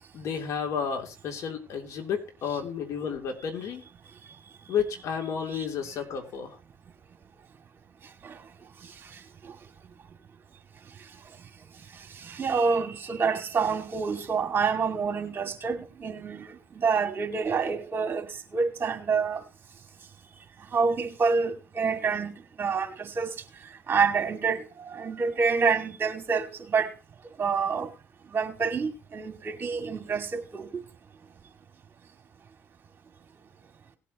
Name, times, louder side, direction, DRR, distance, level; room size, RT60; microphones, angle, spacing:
voice 1, 0.1-3.8 4.7-6.6, left 7 dB, 65° left, 3.0 m, -31 dB
voice 2, 12.2-18.3 18.5-19.4 20.7-22.3 22.6-23.4 23.9-26.9 27.4-27.9 28.3-30.7, right 5 dB, 40° right, 2.5 m, -27 dB
18.5 x 8.3 x 3.1 m
supercardioid pair, 80°, 6 cm